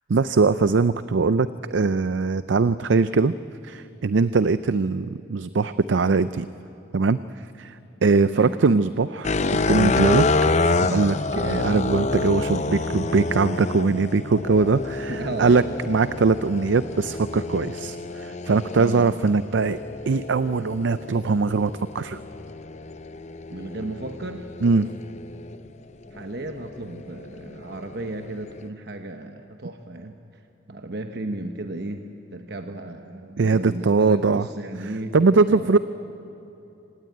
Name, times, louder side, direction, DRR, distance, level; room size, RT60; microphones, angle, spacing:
voice 1, 0.1-3.3 3.6-6.5 6.9-7.8 8.0-10.3 10.9-19.8 20.1-22.2 24.6-24.9 33.4-34.5 35.1-35.8, right 4 dB, 75° right, 14 dB, 0.5 m, -21 dB
voice 2, 8.2-8.5 15.1-15.7 18.8-19.1 23.5-24.5 26.1-30.4 30.7-32.0 32.3-35.2 35.5-35.8, right 2 dB, 60° right, 6 dB, 1.1 m, -34 dB
sound 1, 9.2-25.6 26.2-28.7, left 3 dB, 40° left, 0.6 m, -28 dB
26.0 x 18.5 x 9.3 m, 2.9 s
head